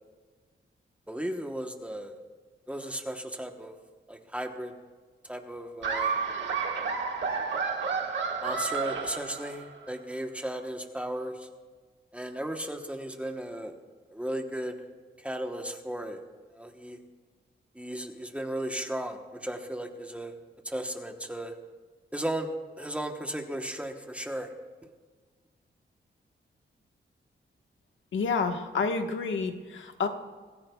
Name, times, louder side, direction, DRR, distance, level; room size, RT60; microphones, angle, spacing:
voice 1, 1.1-2.2 2.7-3.7 4.1-4.7 5.2-6.1 8.4-11.5 12.1-13.7 14.1-14.8 15.2-16.2 16.5-17.0 17.7-20.3 20.6-21.5 22.1-22.5 22.8-24.5, right 1 dB, 5° right, 4 dB, 1.0 m, -35 dB
Laughter, 5.8-9.8, right 5 dB, 70° right, 1.7 m, -31 dB
voice 2, 28.1-30.1, left 4 dB, 85° left, 5 dB, 1.3 m, -29 dB
24.5 x 15.0 x 2.3 m, 1.5 s
wide cardioid pair, 175°, 19 cm